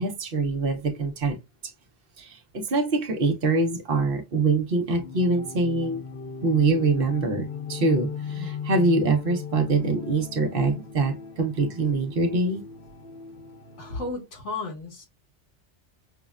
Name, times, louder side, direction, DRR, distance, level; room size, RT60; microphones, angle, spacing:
voice 1, 0.0-1.4 2.2-6.0 6.4-12.6, right 3 dB, 55° right, 0.8 m, -24 dB
sound 1, 5.0-14.1, left 7 dB, 60° left, 0.7 m, -38 dB
voice 2, 13.8-15.1, left 3 dB, 90° left, 1.7 m, -33 dB
5.4 x 2.1 x 2.3 m
omnidirectional pair, 1.2 m